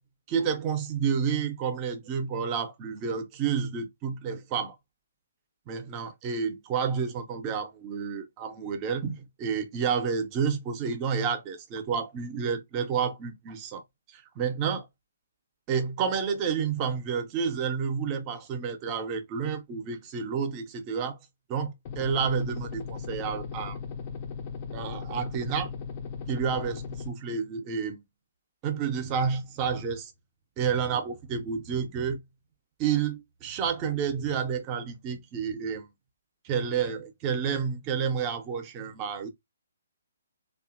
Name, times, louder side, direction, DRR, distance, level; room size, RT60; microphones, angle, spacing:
voice 1, 0.3-4.8 5.7-13.8 14.1-14.9 15.7-21.2 21.5-23.8 24.7-25.7 26.3-28.0 28.6-30.1 30.6-32.2 32.8-35.9 36.4-39.3, right 6 dB, 25° right, 0.5 m, -30 dB
sound 1, 21.9-27.1, left 6 dB, 30° left, 0.4 m, -37 dB
2.7 x 2.4 x 2.4 m
figure-of-eight pair, 130°, 0 cm